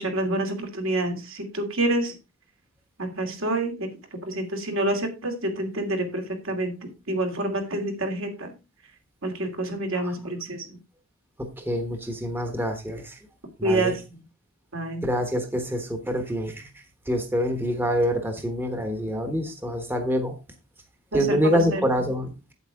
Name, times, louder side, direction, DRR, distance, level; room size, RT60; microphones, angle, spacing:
voice 1, 0.0-2.1 3.0-3.9 4.3-6.7 7.1-8.5 9.2-10.7 13.6-13.9 14.7-15.0 21.1-21.8, right 1 dB, 65° right, 3 dB, 2.7 m, -27 dB
voice 2, 11.6-13.2 13.6-14.0 15.0-16.7 17.1-20.3 21.1-22.3, equal, 10° right, 5 dB, 1.1 m, -26 dB
8.6 x 8.2 x 3.6 m, 0.27 s
head